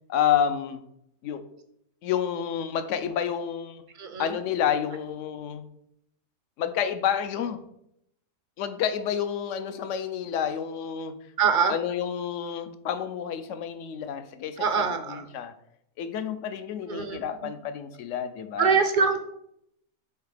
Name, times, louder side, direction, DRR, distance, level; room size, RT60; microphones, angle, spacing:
voice 1, 0.1-0.8 1.2-1.4 2.0-3.9 4.2-5.7 6.6-7.6 8.6-11.1 11.7-15.5 16.0-18.7, left 8 dB, 65° left, 10 dB, 0.9 m, -29 dB
voice 2, 4.0-4.4 11.4-11.8 14.6-15.2 16.9-17.2 18.6-19.2, right 5 dB, 60° right, 7 dB, 0.5 m, -24 dB
8.1 x 2.8 x 4.9 m, 0.76 s
omnidirectional pair, 1.5 m